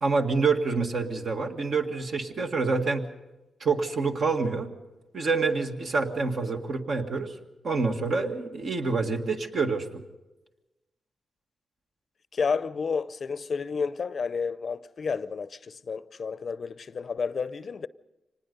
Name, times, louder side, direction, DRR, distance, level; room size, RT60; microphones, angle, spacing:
voice 1, 0.0-3.0 3.6-4.7 5.1-7.3 7.6-10.0, right 4 dB, 65° right, 1.9 m, -27 dB
voice 2, 12.3-17.9, left 5 dB, 55° left, 0.6 m, -31 dB
25.0 x 19.5 x 5.4 m
cardioid pair, 80°, 0 cm